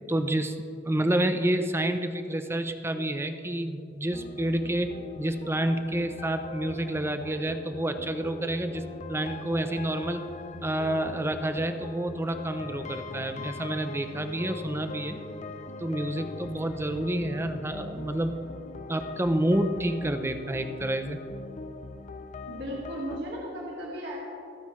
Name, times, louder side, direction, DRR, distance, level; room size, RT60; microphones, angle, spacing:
voice 1, 0.1-0.6 0.8-10.2 10.6-15.2 15.8-18.4 18.9-21.2, right 1 dB, 15° right, 8 dB, 0.7 m, -29 dB
sound 1, 4.1-23.2, left 3 dB, 40° left, 0.6 m, -41 dB
voice 2, 22.5-24.2, equal, 70° right, -4 dB, 1.9 m, -35 dB
26.0 x 9.1 x 3.2 m, 2.6 s
head